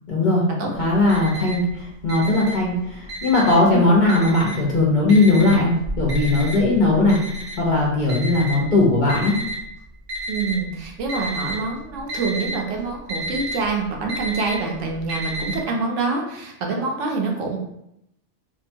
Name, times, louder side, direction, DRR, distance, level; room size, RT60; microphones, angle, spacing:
voice 1, 0.1-7.2 7.6-9.4, left 2 dB, 50° left, -4 dB, 0.7 m, -18 dB
Alarm, 0.8-1.7 2.0-3.7 4.1-4.7 5.1-9.6 10.1-10.7 11.0-11.6 11.9-15.6, equal, 35° right, 0.7 m, -31 dB
voice 2, 10.3-17.6, right 3 dB, 85° right, 0 dB, 1.0 m, -26 dB
2.8 x 2.2 x 2.6 m, 0.80 s
omnidirectional pair, 1.2 m